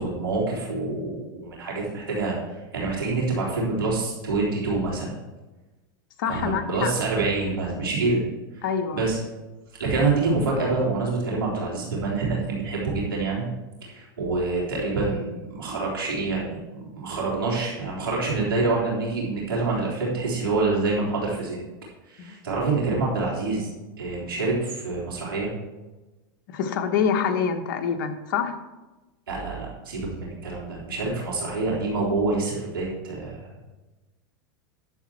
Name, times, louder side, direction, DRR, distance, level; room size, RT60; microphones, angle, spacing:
voice 1, 0.0-5.1 6.3-8.2 8.5-8.7 8.9-9.2 9.8-13.5 13.8-21.6 22.0-23.7 24.0-25.5 29.3-33.5, right 3 dB, 85° right, -4 dB, 3.6 m, -26 dB
voice 2, 6.2-6.9 8.6-9.0 22.2-22.3 26.5-28.5, left 7 dB, 65° left, 6 dB, 1.3 m, -26 dB
10.5 x 7.3 x 4.4 m, 1.1 s
hypercardioid pair, 110°, 12 cm